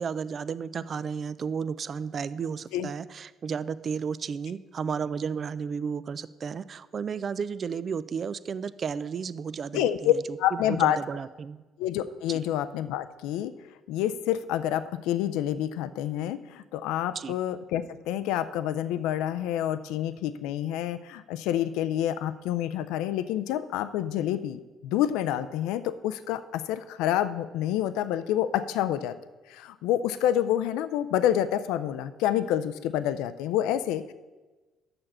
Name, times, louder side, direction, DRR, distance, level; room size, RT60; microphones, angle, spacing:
voice 1, 0.0-11.6 12.3-12.4 17.1-17.3, right 6 dB, 50° right, 16 dB, 0.4 m, -33 dB
voice 2, 9.7-10.1 10.4-11.0 11.8-13.5 13.9-29.2 29.5-34.1, left 11 dB, 80° left, 13 dB, 0.3 m, -28 dB
8.6 x 6.7 x 5.6 m, 1.2 s
hypercardioid pair, 60°, 0 cm